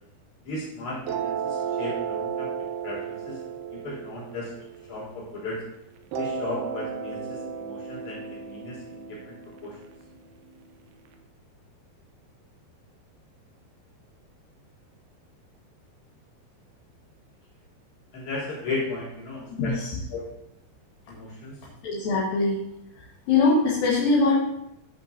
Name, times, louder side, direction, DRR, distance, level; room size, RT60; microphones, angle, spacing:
voice 1, 0.4-2.5 2.8-3.4 3.7-4.5 4.9-5.6 6.2-9.8 18.1-19.8 20.1-20.3 21.1-21.6, left 3 dB, 45° left, -7 dB, 4.5 m, -35 dB
sound 1, 1.1-5.5 6.1-11.1, right 7 dB, 80° right, 2.4 m, -34 dB
voice 2, 19.6-20.0 21.8-22.7 22.9-24.4, left 3 dB, 60° left, -6 dB, 3.1 m, -22 dB
16.5 x 6.0 x 2.8 m, 0.80 s
omnidirectional pair, 5.1 m